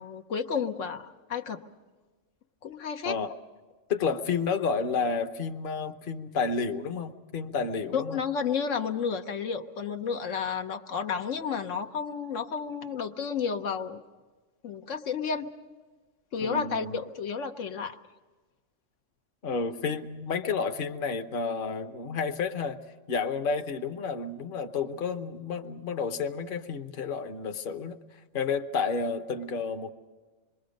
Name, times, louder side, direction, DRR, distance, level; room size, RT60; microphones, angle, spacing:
voice 1, 0.0-1.6 2.6-3.2 7.9-14.0 14.6-15.5 16.3-18.0, left 6 dB, 80° left, 6 dB, 1.2 m, -31 dB
voice 2, 3.9-8.2 16.4-17.0 19.4-22.8 23.1-28.0 28.3-29.9, left 5 dB, 50° left, 7 dB, 1.0 m, -31 dB
26.5 x 22.0 x 5.2 m, 1.3 s
omnidirectional pair, 1.3 m